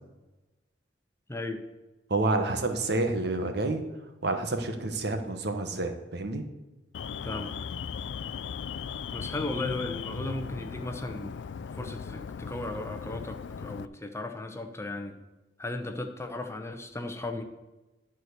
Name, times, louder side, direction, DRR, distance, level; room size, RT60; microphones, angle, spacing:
voice 1, 1.3-1.6 7.2-7.5 9.1-11.4 11.7-15.1 15.6-17.4, left 2 dB, 15° left, 6 dB, 0.9 m, -36 dB
voice 2, 2.1-3.8 4.2-6.4, right 2 dB, 65° right, 6 dB, 1.2 m, -29 dB
Alarm, 6.9-13.9, left 6 dB, 75° left, 0.4 m, -37 dB
11.5 x 4.6 x 8.0 m, 1.1 s
head